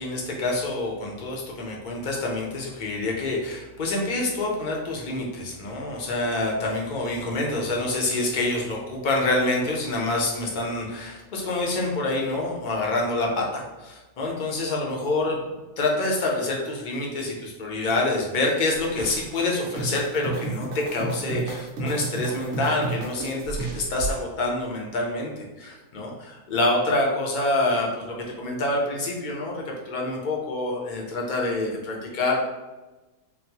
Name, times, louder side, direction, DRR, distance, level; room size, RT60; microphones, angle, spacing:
voice 1, 0.0-25.3 25.6-32.4, left 2 dB, 50° left, -2 dB, 0.6 m, -27 dB
sound 1, 18.7-24.2, right 3 dB, 85° right, 1.2 m, -32 dB
3.9 x 2.1 x 2.8 m, 1.1 s
omnidirectional pair, 1.4 m